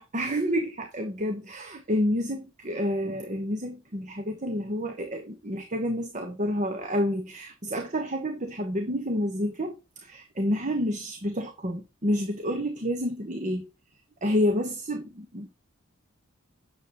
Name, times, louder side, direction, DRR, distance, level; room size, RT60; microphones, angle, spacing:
voice 1, 0.0-13.7 14.2-15.5, equal, 35° right, 1.2 m, -29 dB
9.2 x 7.0 x 3.0 m
head